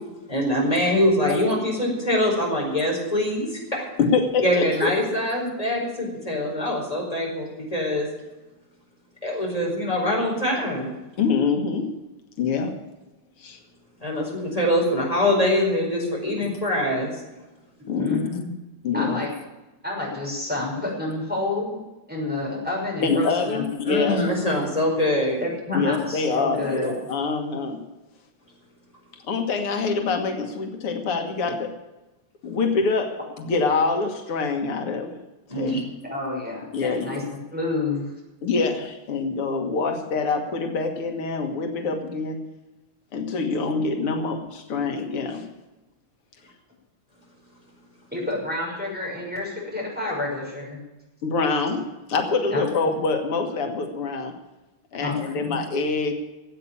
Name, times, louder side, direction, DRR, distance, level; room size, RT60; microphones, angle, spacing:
voice 1, 0.3-3.8 4.4-8.1 9.2-10.9 14.0-17.2 23.8-25.4 35.5-35.8, left 1 dB, 15° left, -1 dB, 4.8 m, -23 dB
voice 2, 4.0-4.9 11.2-11.9 12.4-12.8 13.4-13.6 16.4-16.5 17.9-18.2 18.8-19.2 23.0-24.3 25.7-27.8 29.2-31.8 32.4-35.2 35.5-35.8 36.7-37.3 38.4-42.4 43.1-45.5 51.2-54.4 54.9-56.1, left 4 dB, 90° left, 5 dB, 2.5 m, -25 dB
voice 3, 17.9-18.5 18.9-19.3 19.8-21.8 22.1-23.7 25.4-26.9 36.0-37.2 37.5-38.1 48.1-50.8 52.5-52.9 54.9-55.6, left 2 dB, 5° right, -4 dB, 5.9 m, -29 dB
15.5 x 8.4 x 8.6 m, 1.0 s
omnidirectional pair, 2.4 m